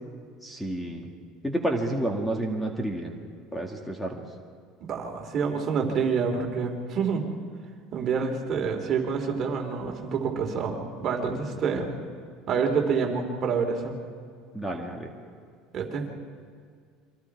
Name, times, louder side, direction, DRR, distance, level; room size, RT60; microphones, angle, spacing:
voice 1, 0.4-1.1 1.4-3.1 3.5-4.2 14.5-15.1, right 1 dB, 5° left, 2 dB, 2.2 m, -30 dB
voice 2, 4.8-7.2 7.9-11.9 12.5-13.9 15.7-16.1, right 5 dB, 40° right, 2 dB, 3.2 m, -27 dB
28.5 x 25.0 x 4.8 m, 2.1 s
supercardioid pair, 120°, 0 cm